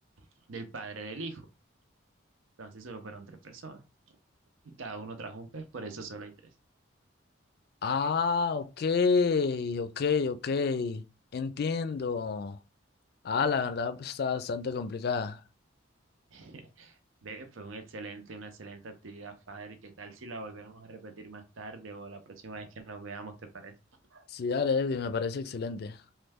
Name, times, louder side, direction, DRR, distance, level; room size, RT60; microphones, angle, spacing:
voice 1, 0.2-1.5 2.6-3.8 4.1-4.2 4.6-6.5 16.3-23.7 24.1-24.7, right 3 dB, 85° right, 0.6 m, -43 dB
voice 2, 7.8-11.0 11.3-12.6 13.2-15.4 24.3-26.0, left 5 dB, 55° left, 0.4 m, -29 dB
3.1 x 2.2 x 3.4 m
head